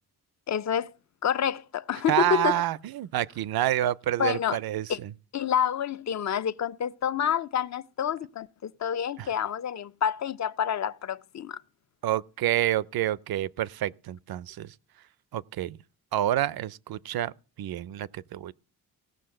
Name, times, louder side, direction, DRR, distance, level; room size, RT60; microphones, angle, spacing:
voice 1, 0.5-0.9 1.2-2.6 4.2-4.6 4.9-5.0 5.3-11.6, left 8 dB, 45° left, 0.5 m, -28 dB
voice 2, 2.1-5.1 9.2-9.3 12.0-14.7 15.3-15.8 16.1-17.3 17.6-18.5, right 13 dB, 70° right, 0.6 m, -28 dB
16.5 x 6.3 x 7.6 m
wide cardioid pair, 135°, 38 cm